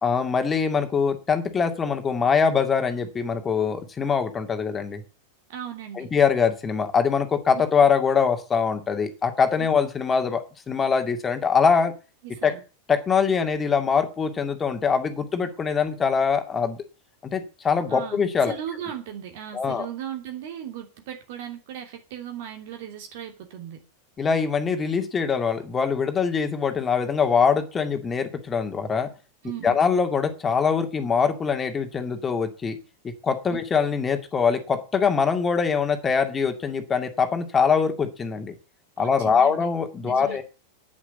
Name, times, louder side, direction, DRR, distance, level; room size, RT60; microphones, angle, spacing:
voice 1, 0.0-5.0 6.0-11.9 12.4-12.5 12.9-16.8 17.2-18.6 19.5-19.9 24.2-29.1 29.6-32.8 33.2-38.5 39.0-40.4, left 6 dB, 20° left, 6 dB, 2.4 m, -23 dB
voice 2, 5.5-6.1 9.6-9.7 12.4-12.6 17.9-23.8 29.4-29.8 33.5-33.6 39.0-39.7 40.0-40.4, right 9 dB, 50° right, 4 dB, 2.9 m, -37 dB
10.5 x 9.9 x 8.2 m, 0.34 s
figure-of-eight pair, 90°, 0 cm